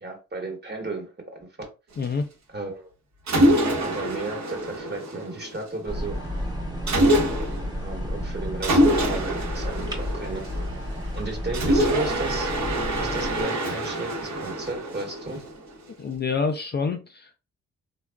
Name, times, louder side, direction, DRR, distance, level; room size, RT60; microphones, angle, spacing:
voice 1, 0.0-1.7 2.5-2.9 3.8-6.2 6.9-7.0 7.7-10.4 11.1-12.5 13.0-15.4, right 3 dB, 35° right, 1.2 m, -34 dB
voice 2, 2.0-2.3 16.0-17.4, left 4 dB, 35° left, 0.4 m, -27 dB
Mechanisms, 3.3-5.7 6.9-7.7 8.6-10.9 11.5-15.7, right 1 dB, 65° right, 1.0 m, -25 dB
sound 1, 5.9-13.4, left 1 dB, 15° right, 0.8 m, -32 dB
3.4 x 2.3 x 2.2 m
cardioid pair, 80°, 31 cm